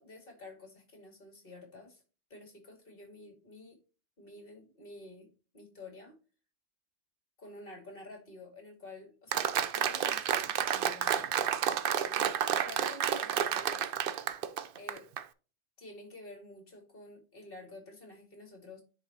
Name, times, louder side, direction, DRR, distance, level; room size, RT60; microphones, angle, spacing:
voice 1, 0.0-2.0 2.3-3.8 4.2-5.3 5.5-6.2 7.4-11.3 11.9-13.9 14.7-15.1 15.8-18.8, left 2 dB, 50° left, 2 dB, 2.6 m, -50 dB
Applause, 9.3-15.2, right 9 dB, 60° right, 0.7 m, -30 dB
9.7 x 3.7 x 2.9 m, 0.34 s
omnidirectional pair, 1.2 m